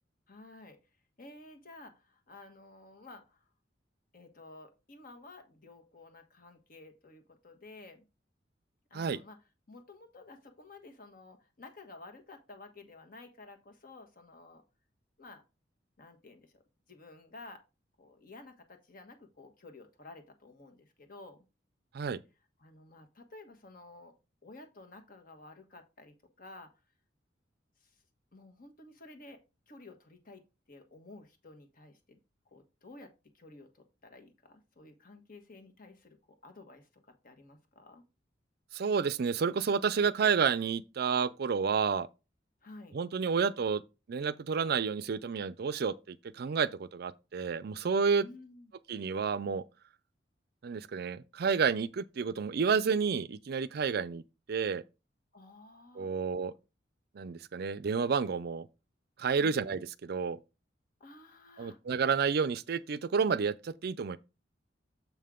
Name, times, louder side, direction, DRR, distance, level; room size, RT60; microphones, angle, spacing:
voice 1, 0.3-0.8 1.2-3.4 4.1-8.1 8.9-9.4 9.7-14.6 15.2-15.4 16.0-16.6 16.9-17.6 18.0-21.4 22.6-24.1 24.4-26.7 28.3-30.4 30.7-32.2 32.5-38.0 42.6-43.0 48.2-48.7 55.3-56.1 59.4-59.6 61.0-61.8, left 2 dB, 50° left, 1.4 m, -52 dB
voice 2, 38.7-42.1 42.9-43.8 44.1-48.3 48.9-49.6 50.6-54.2 54.5-54.8 56.0-56.5 57.1-58.7 59.2-60.4 61.6-64.2, right 6 dB, 55° right, 0.4 m, -30 dB
7.2 x 5.6 x 3.7 m
head